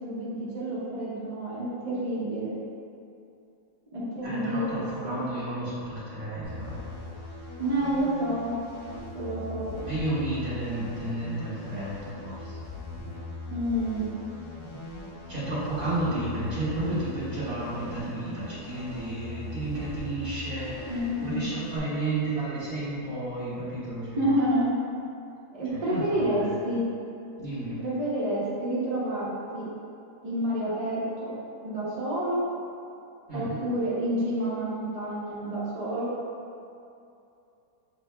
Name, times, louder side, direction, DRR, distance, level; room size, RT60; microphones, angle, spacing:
voice 1, 0.0-2.5 3.9-5.2 7.6-8.5 9.1-9.7 13.5-14.1 20.9-21.5 24.2-24.8 25.5-26.8 27.8-29.7 30.2-31.3 31.6-32.5 33.3-36.1, right 1 dB, 65° right, -8 dB, 0.3 m, -29 dB
voice 2, 4.2-6.8 9.8-12.7 15.3-24.3 25.7-26.5 27.4-27.8 33.3-33.6, right 2 dB, 30° right, -11 dB, 1.3 m, -32 dB
sound 1, 6.4-21.8, left 2 dB, 70° left, 1.3 m, -40 dB
6.5 x 2.7 x 2.2 m, 2.6 s
omnidirectional pair, 1.8 m